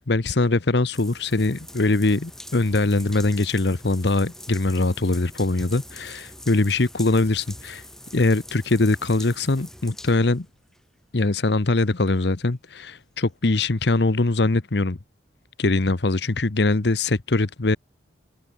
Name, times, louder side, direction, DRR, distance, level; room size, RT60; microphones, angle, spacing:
voice 1, 0.1-7.8 8.1-10.5 11.1-15.0 15.6-17.8, left 2 dB, 65° left, 1.0 m, -22 dB
sound 1, 0.9-10.8 11.4-11.5 12.1-12.3, left 1 dB, ahead, 3.9 m, -44 dB
head